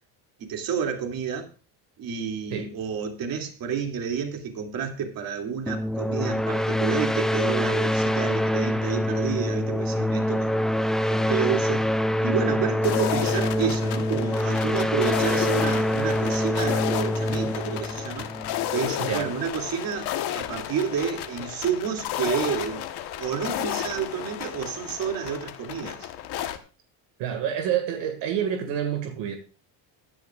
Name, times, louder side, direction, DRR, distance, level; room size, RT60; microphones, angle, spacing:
voice 1, 0.4-1.5 2.0-10.5 11.1-11.9 12.2-18.3 18.7-22.8 23.2-26.1, right 7 dB, 50° right, 2.8 m, -30 dB
sound 1, 5.7-19.0, equal, ahead, 0.5 m, -25 dB
sound 2, 12.8-26.6, left 11 dB, 65° left, 1.3 m, -32 dB
voice 2, 19.0-19.3 27.2-29.4, right 9 dB, 80° right, 2.1 m, -28 dB
15.5 x 10.5 x 2.5 m
cardioid pair, 135°, 43 cm